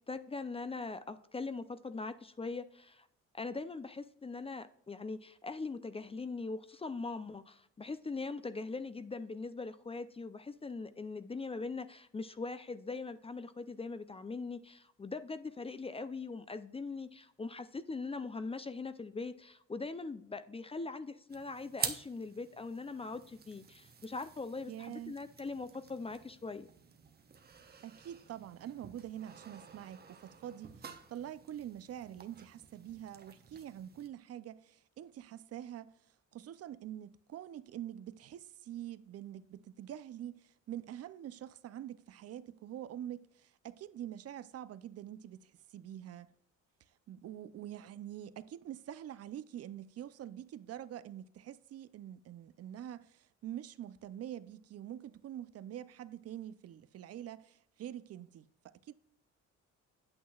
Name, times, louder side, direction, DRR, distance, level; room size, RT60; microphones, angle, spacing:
voice 1, 0.0-3.1 3.3-26.7, left 3 dB, 20° left, 0.4 m, -41 dB
sound 1, 21.3-34.1, right 6 dB, 30° right, 0.8 m, -48 dB
voice 2, 24.7-25.2 27.8-36.0 36.3-46.3 47.1-58.9, right 11 dB, 55° right, 0.5 m, -45 dB
8.6 x 8.2 x 2.3 m
cardioid pair, 90°, 30 cm